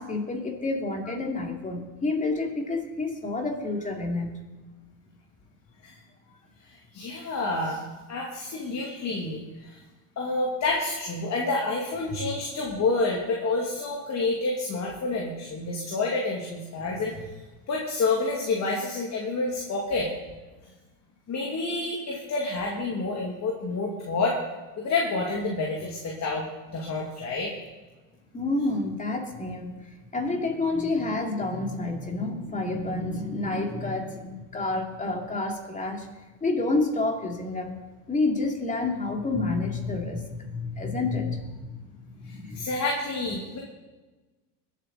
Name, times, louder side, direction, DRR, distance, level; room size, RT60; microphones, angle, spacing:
voice 1, 0.0-4.5 28.3-36.1 36.4-37.8 38.1-41.7 42.2-42.7, left 2 dB, 15° left, 1 dB, 2.7 m, -29 dB
voice 2, 6.9-7.8 8.1-9.7 10.2-17.3 17.7-20.1 21.3-24.4 24.8-27.5 42.5-43.6, left 3 dB, 35° left, -2 dB, 2.6 m, -28 dB
21.5 x 8.4 x 4.1 m, 1.2 s
hypercardioid pair, 95°, 49 cm